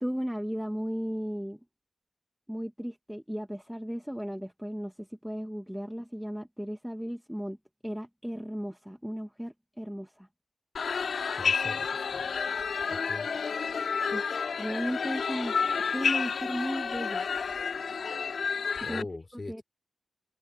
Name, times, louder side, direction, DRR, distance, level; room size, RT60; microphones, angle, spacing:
voice 1, 0.0-1.6 2.5-7.6 7.8-10.3 14.1-15.6 15.9-17.3 18.9-19.0 19.5-19.6, equal, 5° right, 1.2 m, -35 dB
sound 1, 10.8-19.0, left 5 dB, 75° left, 2.8 m, -30 dB
voice 2, 11.4-12.3 12.9-13.3 18.8-19.6, left 3 dB, 35° left, 3.9 m, -42 dB
wide cardioid pair, 105°, 0 cm